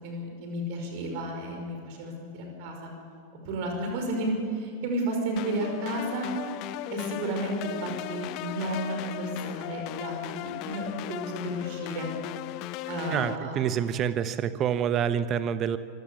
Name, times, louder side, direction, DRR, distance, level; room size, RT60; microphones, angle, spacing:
voice 1, 0.0-2.9 3.4-6.3 6.9-12.1 12.9-13.6, right 1 dB, 45° right, 2 dB, 5.5 m, -32 dB
sound 1, 5.4-13.4, left 14 dB, 40° left, 0.6 m, -37 dB
voice 2, 13.1-15.8, right 8 dB, 30° right, 13 dB, 1.1 m, -27 dB
25.0 x 16.5 x 7.1 m, 2.5 s
figure-of-eight pair, 90°, 0 cm